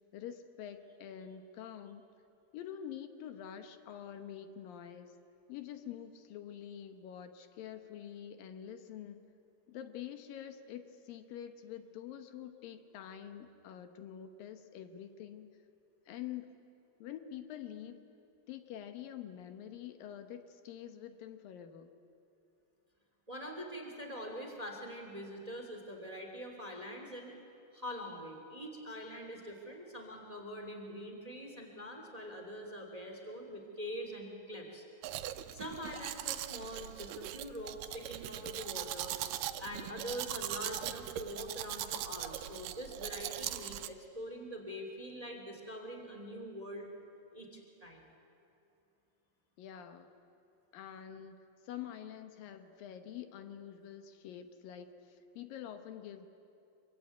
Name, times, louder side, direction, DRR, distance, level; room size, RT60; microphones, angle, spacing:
voice 1, 0.1-2.1 2.5-5.1 5.5-9.2 9.7-15.5 16.1-16.6 17.0-18.0 18.5-21.9 49.6-50.1 50.7-56.3, left 10 dB, 80° left, 8 dB, 2.8 m, -46 dB
voice 2, 23.3-27.4 27.7-34.8 35.5-39.2 39.6-46.9 47.3-48.1, equal, 10° right, 2 dB, 2.4 m, -44 dB
Domestic sounds home sounds, 35.0-43.9, right 13 dB, 75° right, 2.3 m, -40 dB
25.0 x 23.0 x 9.3 m, 2.7 s
omnidirectional pair, 4.0 m